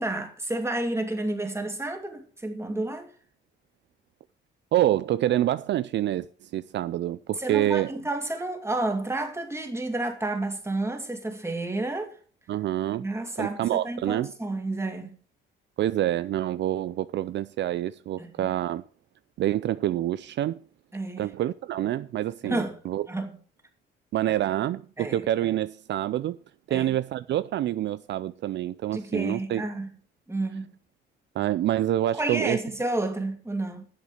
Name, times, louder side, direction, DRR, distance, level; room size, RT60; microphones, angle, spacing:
voice 1, 0.0-3.1 7.4-12.1 13.0-15.2 18.2-18.5 20.9-21.3 22.4-22.8 23.1-23.3 25.0-25.2 26.7-27.0 28.9-29.9 30.3-30.7 32.2-33.9, right 2 dB, 15° right, 2.6 m, -30 dB
voice 2, 4.7-7.9 12.5-13.0 13.4-14.3 15.8-18.9 19.4-20.6 21.2-23.1 24.1-26.4 26.7-29.6 31.4-32.6, right 13 dB, 65° right, 0.4 m, -27 dB
10.5 x 7.4 x 6.6 m
cardioid pair, 90°, 20 cm